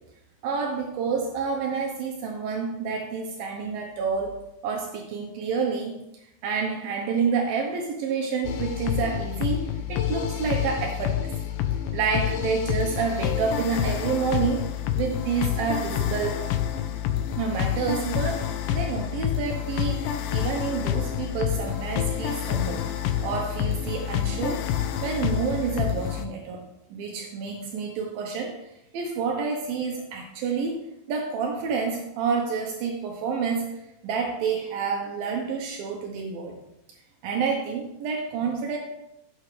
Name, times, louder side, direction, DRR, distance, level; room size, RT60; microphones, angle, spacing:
voice 1, 0.4-4.4 4.6-6.0 6.4-11.3 11.9-14.6 15.0-16.4 17.4-22.8 23.2-24.6 25.0-26.6 26.9-28.5 28.9-36.5 37.2-38.8, right 5 dB, 80° right, 1 dB, 2.7 m, -28 dB
sound 1, 8.4-26.3, left 10 dB, 75° left, 2.1 m, -28 dB
15.0 x 6.7 x 3.3 m, 0.86 s
omnidirectional pair, 4.2 m